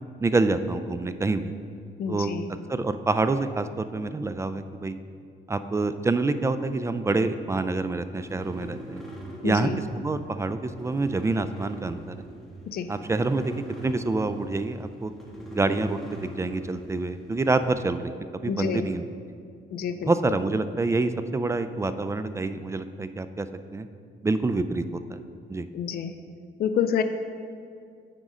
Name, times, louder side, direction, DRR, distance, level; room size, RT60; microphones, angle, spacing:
voice 1, 0.2-1.5 2.1-2.3 2.7-5.0 5.5-9.0 9.4-12.1 12.9-13.5 13.8-15.1 15.5-18.1 18.4-19.0 20.0-23.5 23.7-23.9 24.2-25.2 25.5-25.7, right 3 dB, 15° right, 11 dB, 0.3 m, -27 dB
voice 2, 2.0-2.5 9.4-9.8 12.7-12.9 18.5-18.9 19.7-20.1 25.7-26.1 26.6-27.0, left 8 dB, 50° left, 9 dB, 0.4 m, -28 dB
sound 1, 7.9-17.7, right 1 dB, ahead, 1.4 m, -42 dB
9.2 x 3.7 x 4.9 m, 2.3 s
cardioid pair, 90°, 20 cm